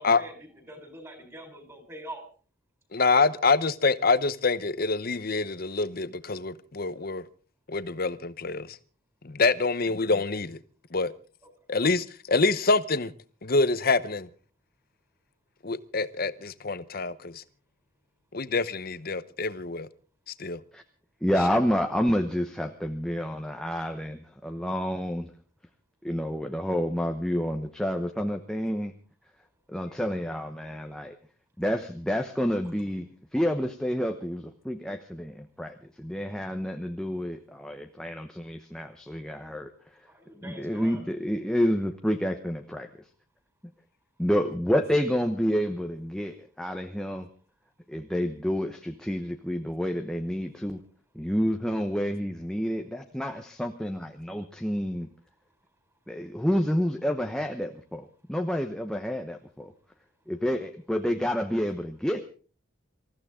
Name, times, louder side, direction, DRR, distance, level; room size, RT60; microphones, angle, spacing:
voice 1, 0.0-2.2 40.1-41.0, right 1 dB, 15° right, 4.4 m, -44 dB
voice 2, 2.9-7.2 7.7-8.8 9.2-10.6 10.9-11.1 11.7-13.1 13.4-14.3 15.6-17.4 18.3-19.9 20.3-20.6, left 3 dB, 45° left, 0.9 m, -26 dB
voice 3, 21.2-25.3 26.0-28.9 29.7-31.2 31.6-39.7 40.4-42.9 44.2-47.3 47.9-50.8 51.1-55.1 56.1-59.7 60.3-62.3, equal, 5° left, 0.9 m, -29 dB
26.0 x 14.5 x 3.7 m
head